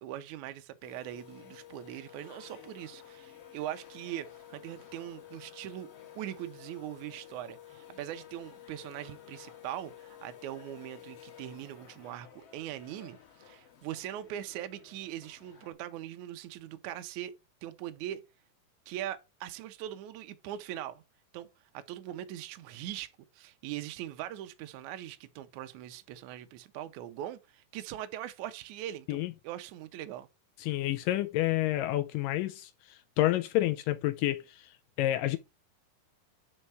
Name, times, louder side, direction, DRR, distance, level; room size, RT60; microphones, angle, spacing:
voice 1, 0.0-5.9 6.2-17.3 17.6-18.2 18.9-21.0 21.3-21.5 21.7-30.3, right 12 dB, 80° right, 1.8 m, -41 dB
sound 1, 0.8-15.7, left 10 dB, 55° left, 1.9 m, -52 dB
voice 2, 30.6-32.7 33.2-34.4 35.0-35.4, left 15 dB, 80° left, 2.1 m, -28 dB
5.5 x 4.4 x 6.1 m
omnidirectional pair, 4.1 m